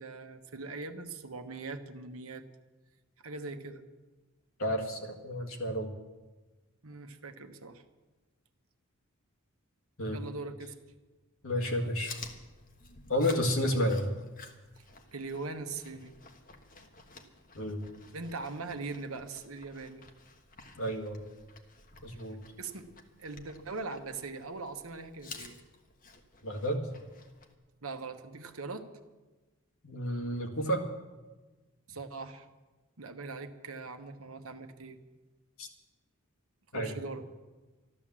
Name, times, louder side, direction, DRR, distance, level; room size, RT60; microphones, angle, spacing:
voice 1, 0.0-2.4 3.2-3.8 6.8-7.8 10.1-10.7 14.8-14.9 15.1-16.1 18.1-20.0 22.6-22.9 23.2-25.6 27.8-28.9 31.9-32.5 33.0-35.0 36.7-37.2, right 3 dB, 70° right, 7 dB, 1.2 m, -41 dB
voice 2, 4.6-5.9 10.0-10.2 11.4-12.1 13.1-14.1 17.5-17.8 20.8-21.3 22.0-22.4 26.4-26.9 29.8-30.8 35.6-35.7 36.7-36.9, equal, 65° left, 1 dB, 2.1 m, -31 dB
Chewing mastication, 11.7-27.5, left 4 dB, 40° left, 1.4 m, -52 dB
13.0 x 12.0 x 7.5 m, 1.2 s
head